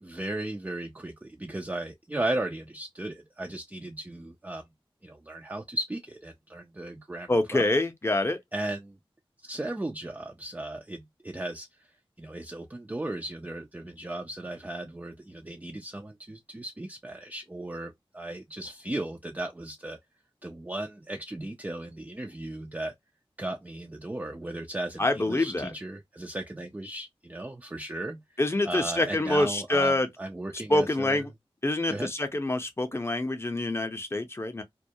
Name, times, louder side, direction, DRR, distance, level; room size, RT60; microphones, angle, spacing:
voice 1, 0.0-4.6 5.0-7.6 8.5-9.0 9.4-11.7 12.2-20.0 20.4-22.9 23.4-28.2 28.6-31.2 31.9-32.1, right 1 dB, 15° right, 0.4 m, -36 dB
voice 2, 7.3-8.4 25.0-25.7 28.4-30.1 30.7-31.3 31.6-34.6, left 2 dB, 25° left, 0.6 m, -26 dB
2.2 x 2.1 x 2.6 m
wide cardioid pair, 65°, 10 cm